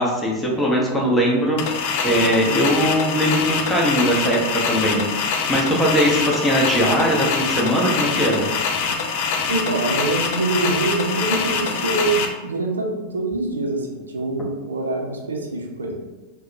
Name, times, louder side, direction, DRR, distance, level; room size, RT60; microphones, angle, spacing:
voice 1, 0.0-4.4 4.6-8.5, equal, 10° left, -3 dB, 0.6 m, -20 dB
sound 1, 1.6-12.3, left 5 dB, 50° left, 0.3 m, -24 dB
voice 2, 9.5-16.0, right 2 dB, 75° right, 0 dB, 0.4 m, -24 dB
2.7 x 2.1 x 2.5 m, 1.1 s
figure-of-eight pair, 90°, 0 cm